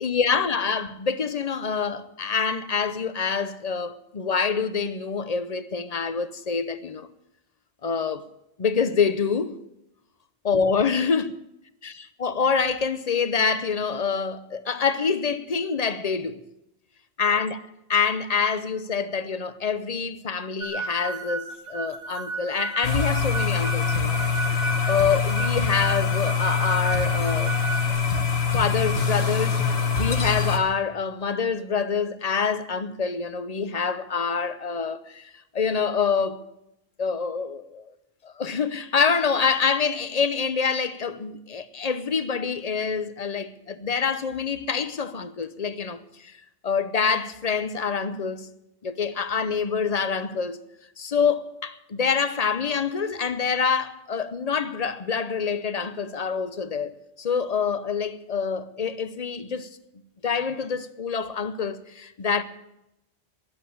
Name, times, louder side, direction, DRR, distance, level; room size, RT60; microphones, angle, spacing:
voice 1, 0.0-7.1 7.8-8.3 8.6-9.6 10.4-11.3 11.8-16.4 17.2-17.6 17.9-24.2 24.7-27.5 27.9-28.0 28.5-36.4 37.0-37.8 38.2-46.3 46.6-48.5 48.8-50.6 51.0-59.7 60.2-62.4, left 6 dB, 40° left, 0.8 m, -26 dB
sound 1, 20.6-27.9, right 4 dB, 65° right, 2.4 m, -33 dB
sound 2, 22.8-30.6, left 5 dB, 65° left, 1.7 m, -24 dB
13.5 x 11.0 x 8.4 m
omnidirectional pair, 1.1 m